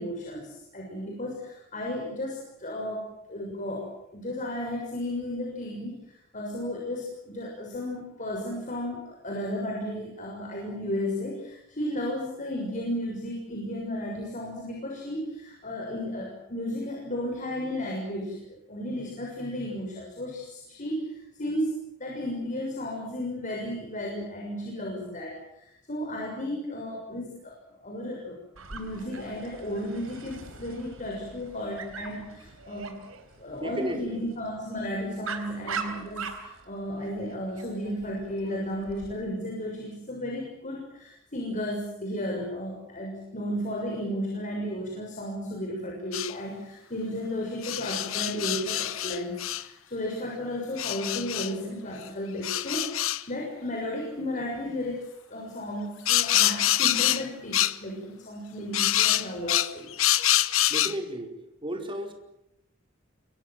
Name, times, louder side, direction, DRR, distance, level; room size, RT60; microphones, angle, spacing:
voice 1, 0.0-21.7 22.0-28.4 28.7-32.9 33.4-55.0 55.3-60.3, left 1 dB, 40° left, 0 dB, 6.8 m, -34 dB
Dog, 28.5-39.1, right 5 dB, 85° right, 4.1 m, -42 dB
voice 2, 33.5-34.2 60.7-61.3 61.6-62.1, right 1 dB, 25° right, 3 dB, 5.0 m, -34 dB
sound 1, 46.1-46.3 47.6-49.6 50.8-51.5 52.4-53.2 56.1-57.3 57.5-57.8 58.7-61.0, left 13 dB, 70° left, 1.0 m, -25 dB
29.0 x 24.0 x 7.6 m, 0.82 s
head